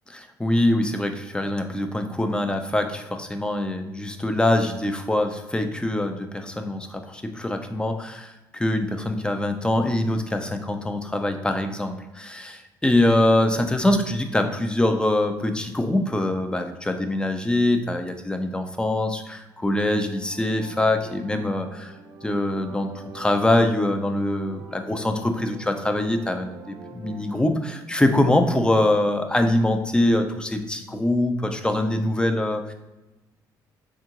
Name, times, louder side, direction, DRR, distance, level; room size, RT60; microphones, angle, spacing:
voice 1, 0.4-21.9 22.2-22.9 23.1-32.7, left 1 dB, 10° left, 6 dB, 0.4 m, -23 dB
sound 1, 19.9-27.8, right 2 dB, 50° right, 0.6 m, -44 dB
3.6 x 2.3 x 2.8 m, 1.0 s
supercardioid pair, 65°, 9 cm